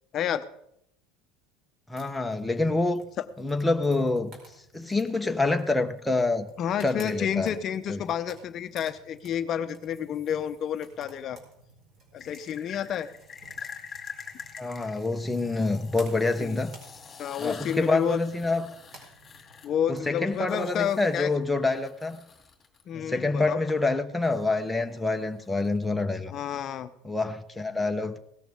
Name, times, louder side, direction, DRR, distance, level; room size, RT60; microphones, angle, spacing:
voice 1, 0.1-0.4 6.6-11.4 12.1-13.1 16.4-16.6 17.2-18.2 19.6-21.3 22.9-23.6 26.3-26.9, left 9 dB, 40° left, 0.8 m, -30 dB
voice 2, 1.9-3.0 3.4-4.4 4.7-6.5 6.8-7.6 7.9-8.0 14.6-16.7 17.4-18.7 19.9-22.2 22.9-26.3 27.0-28.2, left 3 dB, 5° left, 0.9 m, -27 dB
sound 1, 1.9-20.0, right 2 dB, 40° right, 4.8 m, -54 dB
sound 2, 9.9-10.9 12.2-22.8 24.2-26.0, left 6 dB, 25° left, 2.6 m, -46 dB
17.5 x 14.0 x 3.6 m
supercardioid pair, 135°, 0 cm